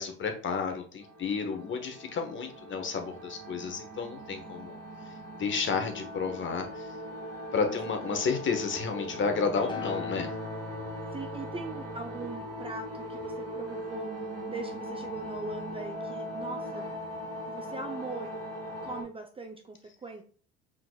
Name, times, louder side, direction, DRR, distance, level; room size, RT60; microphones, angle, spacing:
voice 1, 0.0-4.8 5.1-5.2 5.4-6.9 7.5-10.3, left 5 dB, 35° left, 5 dB, 1.1 m, -31 dB
sound 1, 1.0-19.0, equal, 45° right, 1.7 m, -40 dB
Acoustic guitar, 9.7-14.0 14.8-14.9, left 5 dB, 15° left, 0.8 m, -42 dB
voice 2, 11.1-16.9 17.5-18.4 18.8-20.2, right 3 dB, 20° right, 5 dB, 0.5 m, -41 dB
4.5 x 3.8 x 2.3 m, 0.42 s
hypercardioid pair, 75°, 32 cm